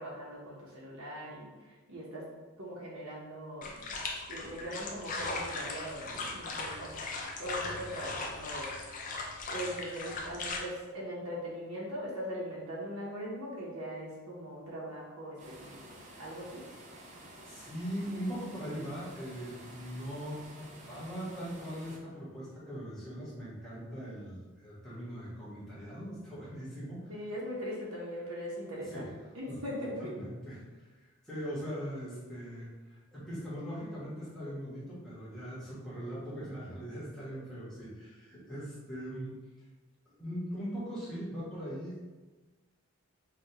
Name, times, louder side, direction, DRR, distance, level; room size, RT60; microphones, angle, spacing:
voice 1, 0.0-2.3 2.6-3.9 4.3-6.9 7.4-9.0 9.5-16.7 27.1-29.1 29.3-30.1, equal, 85° right, -5 dB, 0.9 m, -40 dB
sound 1, 3.6-10.6, left 3 dB, 35° left, 0.4 m, -38 dB
sound 2, 15.4-22.0, right 1 dB, 35° right, 0.4 m, -51 dB
voice 2, 17.4-27.1 28.9-29.1 29.5-29.6 30.0-39.7 40.1-42.0, equal, ahead, -10 dB, 1.2 m, -40 dB
5.0 x 2.3 x 2.9 m, 1.2 s
head